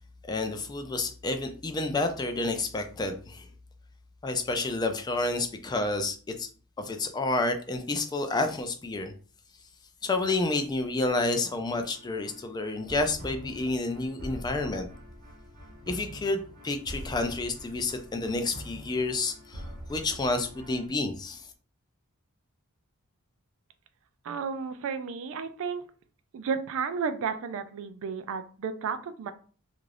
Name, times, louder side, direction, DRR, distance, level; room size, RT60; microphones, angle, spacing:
voice 1, 0.3-3.4 4.2-6.5 6.8-9.1 10.0-14.9 15.9-19.6 19.9-21.5, left 2 dB, 20° left, 6 dB, 0.3 m, -29 dB
sound 1, 11.7-20.9, equal, 45° right, 0.7 m, -44 dB
voice 2, 24.2-25.8 26.3-29.3, right 6 dB, 65° right, 11 dB, 0.3 m, -32 dB
2.5 x 2.3 x 3.2 m, 0.40 s
head